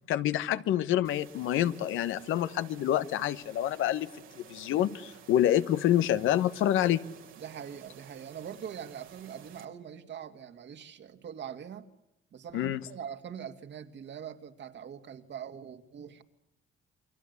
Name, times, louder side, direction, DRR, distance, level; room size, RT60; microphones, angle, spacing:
voice 1, 0.1-4.1 4.4-7.0 12.5-12.8, left 12 dB, 85° left, 13 dB, 1.2 m, -27 dB
sound 1, 1.0-9.7, right 9 dB, 85° right, 3.5 m, -53 dB
voice 2, 7.4-11.9 12.3-16.2, right 8 dB, 65° right, 7 dB, 2.4 m, -43 dB
29.0 x 23.0 x 8.3 m, 0.82 s
cardioid pair, 90°, 20 cm